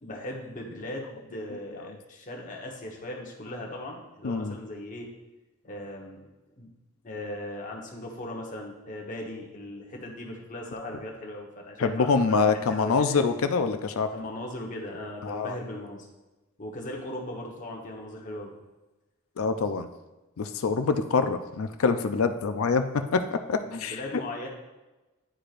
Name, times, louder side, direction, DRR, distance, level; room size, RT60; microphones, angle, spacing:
voice 1, 0.0-5.1 5.6-6.2 6.5-6.7 7.0-13.2 14.1-16.1 16.6-18.5 23.6-24.5, left 1 dB, 35° left, 0 dB, 1.1 m, -38 dB
voice 2, 4.2-4.5 11.8-14.1 15.2-15.5 19.4-19.9 20.4-22.8 23.1-24.0, left 4 dB, 70° left, 8 dB, 0.5 m, -25 dB
10.5 x 4.8 x 2.5 m, 1.1 s
head